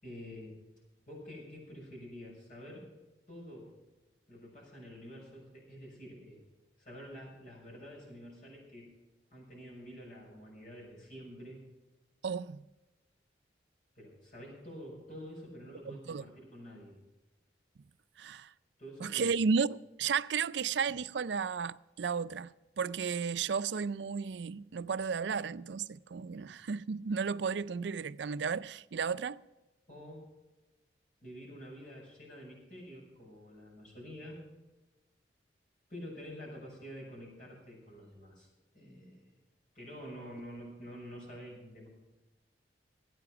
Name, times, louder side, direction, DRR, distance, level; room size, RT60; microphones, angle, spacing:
voice 1, 0.0-0.5 1.1-2.9 3.3-3.7 4.3-6.4 6.8-8.9 9.3-11.6 13.9-17.0 18.8-19.3 26.3-26.5 29.9-30.3 31.2-34.4 35.9-38.5 38.7-39.3 39.7-41.9, equal, 45° left, 6.5 m, -48 dB
voice 2, 12.2-12.6 15.9-16.2 18.2-18.5 19.0-19.7 20.0-29.4, right 5 dB, 75° right, 0.4 m, -33 dB
18.0 x 9.2 x 5.9 m
head